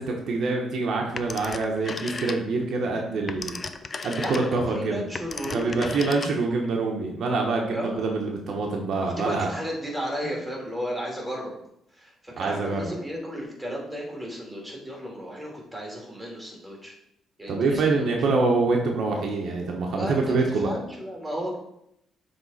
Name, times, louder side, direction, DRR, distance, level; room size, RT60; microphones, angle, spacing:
voice 1, 0.0-3.6 4.0-5.0 5.5-9.5 10.2-10.3 12.4-12.9 17.5-20.7, right 3 dB, 65° right, 0 dB, 1.0 m, -25 dB
Telephone, 1.2-2.7 3.1-6.7, left 4 dB, 35° left, 0.5 m, -36 dB
voice 2, 4.2-5.9 7.7-8.0 9.0-11.5 11.9-16.9 17.4-18.1 19.9-21.6, equal, 5° right, -2 dB, 2.4 m, -34 dB
6.9 x 3.5 x 4.2 m, 0.77 s
cardioid pair, 90°, 0 cm